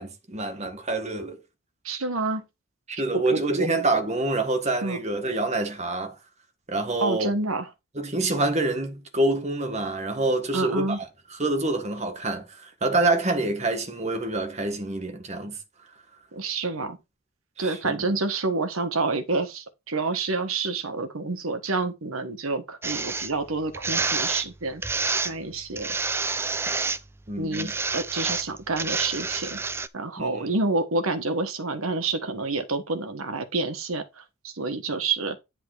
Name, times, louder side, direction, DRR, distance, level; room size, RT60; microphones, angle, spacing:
voice 1, 0.0-1.4 2.9-6.2 6.7-7.3 7.9-15.6 17.6-18.0 27.3-27.7 30.2-30.5, right 2 dB, 30° right, 1.5 m, -27 dB
voice 2, 1.8-2.4 3.1-3.7 4.8-5.0 7.0-7.6 10.5-11.0 16.3-17.0 17.6-24.8 25.2-25.9 27.4-29.6 29.9-35.4, right 3 dB, 80° right, 1.4 m, -28 dB
sound 1, 22.8-23.3 23.7-24.5 24.8-25.3 25.8-27.0 27.5-29.9, right 4 dB, 10° right, 0.3 m, -28 dB
10.5 x 3.7 x 4.8 m
head